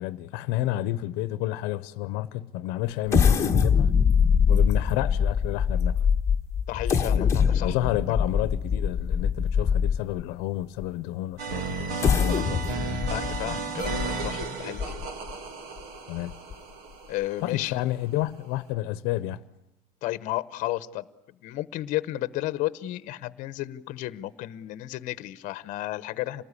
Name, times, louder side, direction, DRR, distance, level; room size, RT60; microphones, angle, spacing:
voice 1, 0.0-3.9 4.5-6.0 7.1-7.3 7.6-12.6 16.1-16.4 17.4-19.4, left 15 dB, 70° left, 0.9 m, -30 dB
sound 1, 3.1-10.2 10.8-10.9 11.8-15.3 15.8-15.9 16.3-16.5, left 6 dB, 15° left, 1.4 m, -23 dB
voice 2, 6.7-7.8 13.1-14.9 17.1-17.8 20.0-21.1 21.4-26.4, left 16 dB, 50° left, 1.0 m, -33 dB
sound 2, 11.4-17.9 18.7-18.8, right 4 dB, 70° right, 2.8 m, -34 dB
27.5 x 19.5 x 9.9 m
cardioid pair, 170°, 16 cm